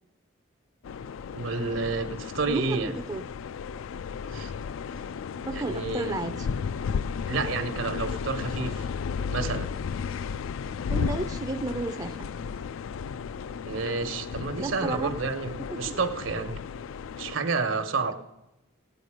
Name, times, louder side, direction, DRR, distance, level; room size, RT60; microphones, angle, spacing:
sound 1, 0.8-17.4, left 6 dB, 80° left, 0.3 m, -34 dB
voice 1, 1.3-2.9 4.3-4.5 5.5-6.2 7.3-8.8 9.3-9.7 13.6-16.6 17.1-18.1, right 4 dB, 80° right, 8 dB, 1.1 m, -30 dB
voice 2, 2.5-3.3 5.5-6.5 10.9-12.3 14.6-15.2 15.7-16.0, right 2 dB, 20° right, 7 dB, 0.4 m, -33 dB
16.5 x 9.4 x 4.9 m, 0.95 s
head